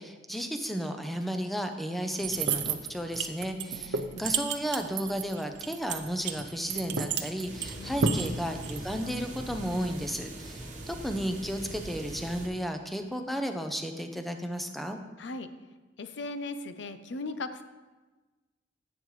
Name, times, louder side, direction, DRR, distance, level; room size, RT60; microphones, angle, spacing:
voice 1, 0.0-15.0, equal, ahead, 6 dB, 0.6 m, -33 dB
sound 1, 2.2-9.1, right 5 dB, 70° right, 0.6 m, -31 dB
voice 2, 3.6-4.2 7.7-8.5 15.2-15.5 16.0-17.6, left 2 dB, 70° left, 10 dB, 0.6 m, -39 dB
sound 2, 7.4-12.5, right 1 dB, 40° right, 1.2 m, -42 dB
10.5 x 8.2 x 3.2 m, 1.2 s
head